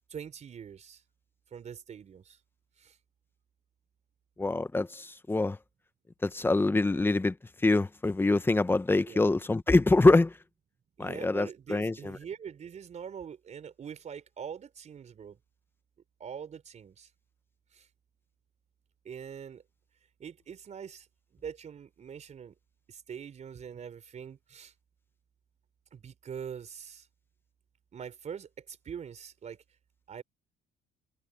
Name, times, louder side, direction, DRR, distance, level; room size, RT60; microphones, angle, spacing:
voice 1, 0.1-1.0 1.5-2.4 2.8-3.0 9.1-9.3 11.0-15.4 16.2-17.1 17.7-17.9 19.0-19.6 20.2-21.1 21.3-22.5 22.9-24.7 25.9-27.1 27.9-29.6 30.1-30.2, right 7 dB, 45° right, 4.4 m, -43 dB
voice 2, 4.4-5.6 6.2-7.3 7.6-10.3 11.0-12.2, left 2 dB, 15° left, 0.9 m, -25 dB
cardioid pair, 110°, 17 cm